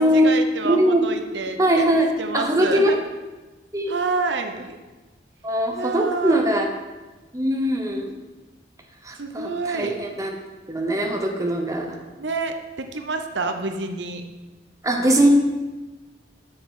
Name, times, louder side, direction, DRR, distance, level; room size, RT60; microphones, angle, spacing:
voice 1, 0.0-1.8 2.2-3.0 3.9-4.8 5.7-6.4 9.2-10.0 12.2-14.2, right 3 dB, 80° right, 6 dB, 0.7 m, -28 dB
voice 2, 0.6-1.0 1.6-2.9 3.7-3.9 5.4-6.7 7.3-8.1 9.0-10.4 10.7-12.0 14.8-15.3, right 1 dB, 20° right, 2 dB, 0.8 m, -21 dB
8.3 x 6.5 x 4.8 m, 1.2 s
head